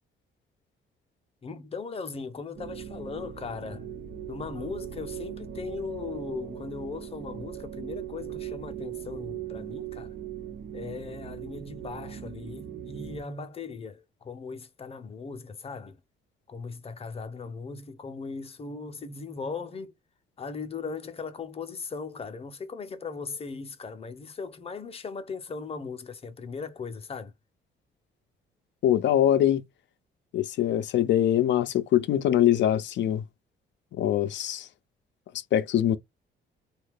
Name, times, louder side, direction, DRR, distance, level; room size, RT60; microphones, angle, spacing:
voice 1, 1.4-3.9 4.3-10.1 10.7-16.0 16.5-19.9 20.4-27.3, left 4 dB, 30° left, 0.7 m, -38 dB
sound 1, 2.6-13.2, right 10 dB, 65° right, 0.9 m, -39 dB
voice 2, 28.8-29.6 30.3-33.2 33.9-34.7 35.5-36.0, left 11 dB, 65° left, 0.4 m, -23 dB
2.7 x 2.3 x 3.4 m
cardioid pair, 90°, 20 cm